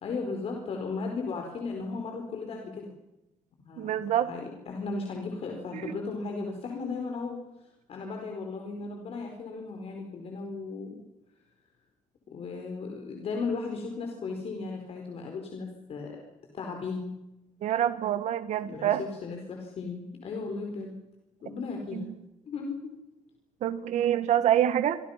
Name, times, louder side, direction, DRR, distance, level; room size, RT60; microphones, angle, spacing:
voice 1, 0.0-2.9 3.6-7.4 7.9-11.0 12.3-16.2 16.5-17.1 18.6-20.9 21.4-22.1 22.4-22.9, left 4 dB, 50° left, 2 dB, 4.6 m, -36 dB
voice 2, 3.8-4.3 17.6-19.0 21.9-22.1 23.6-25.0, right 11 dB, 70° right, 11 dB, 1.6 m, -26 dB
26.5 x 25.5 x 5.9 m, 0.93 s
cardioid pair, 160°, 13 cm